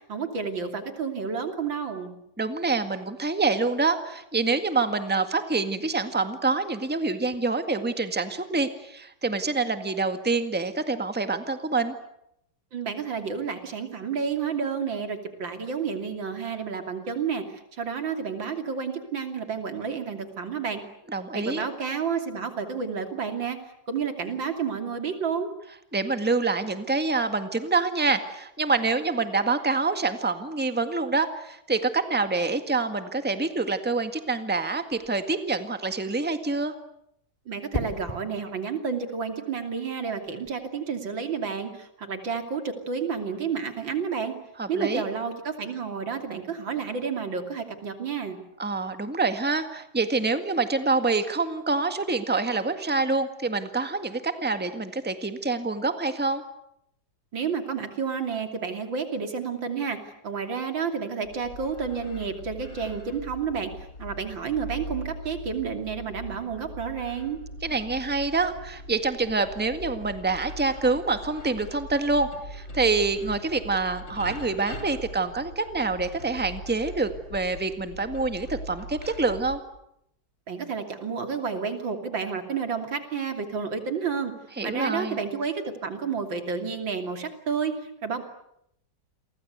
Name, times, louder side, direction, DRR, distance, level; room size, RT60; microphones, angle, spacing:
voice 1, 0.0-2.2 12.7-20.8 21.3-23.6 23.9-25.5 37.5-44.3 44.7-48.4 57.3-60.0 60.2-67.4 80.5-84.3 84.6-88.2, right 6 dB, 80° right, 6 dB, 3.6 m, -30 dB
voice 2, 2.4-11.9 21.1-21.6 25.9-36.7 44.6-45.1 48.6-56.4 67.6-79.6 84.6-85.2, right 3 dB, 5° right, 8 dB, 1.7 m, -26 dB
sound 1, 34.9-35.3 37.7-38.3 40.2-40.5, equal, 15° left, 4.0 m, -33 dB
sound 2, 61.2-79.6, equal, 80° left, 5.1 m, -41 dB
29.5 x 23.5 x 8.2 m, 0.77 s
omnidirectional pair, 2.0 m